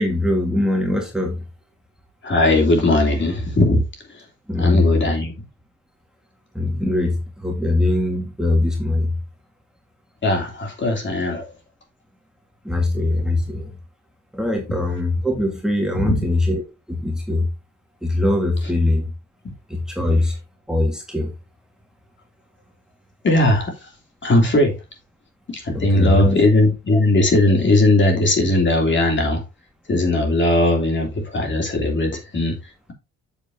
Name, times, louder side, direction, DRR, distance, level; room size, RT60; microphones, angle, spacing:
voice 1, 0.0-1.5 4.5-5.0 6.6-9.1 12.7-13.7 14.3-16.6 16.9-17.5 18.0-19.1 19.7-20.4 20.7-21.3 25.7-26.4, left 2 dB, ahead, 1.8 m, -21 dB
voice 2, 2.2-3.8 4.1-4.2 4.6-5.3 10.2-11.5 15.9-16.2 23.2-23.9 24.2-24.8 25.5-29.4 29.9-32.6, left 2 dB, 40° left, 3.2 m, -18 dB
7.4 x 7.2 x 2.8 m
cardioid pair, 90°, 30 cm